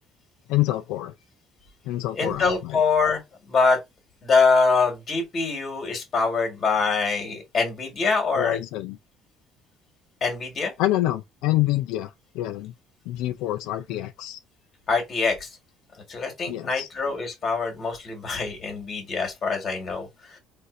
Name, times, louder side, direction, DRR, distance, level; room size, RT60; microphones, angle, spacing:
voice 1, 0.5-1.1 1.8-2.8 8.3-9.0 10.8-12.7 13.1-14.4 16.5-16.9, left 15 dB, 85° left, 0.3 m, -27 dB
voice 2, 2.1-3.2 3.5-3.8 4.2-8.6 10.2-10.7 14.9-15.6 16.1-20.4, left 4 dB, 30° left, 1.5 m, -24 dB
4.1 x 2.5 x 2.5 m
cardioid pair, 145°, 0 cm